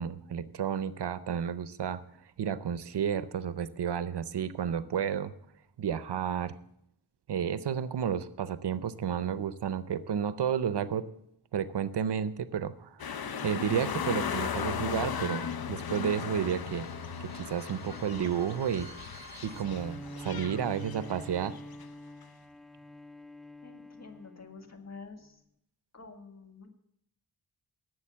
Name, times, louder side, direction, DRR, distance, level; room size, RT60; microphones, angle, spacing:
voice 1, 0.0-2.0 2.4-5.3 5.8-6.5 7.3-11.0 11.5-16.8 17.2-18.9 19.4-21.6, right 8 dB, 85° right, 14 dB, 0.7 m, -31 dB
sound 1, 13.0-21.8 22.2-22.3, left 7 dB, 65° left, 0.7 m, -37 dB
sound 2, 14.9-19.6, right 3 dB, 25° right, 1.9 m, -54 dB
Bowed string instrument, 19.4-24.9, right 1 dB, ahead, 0.6 m, -46 dB
voice 2, 23.6-25.4 25.9-26.7, left 4 dB, 40° left, 4 dB, 1.8 m, -48 dB
11.5 x 7.8 x 7.4 m, 0.76 s
wide cardioid pair, 70°, 40 cm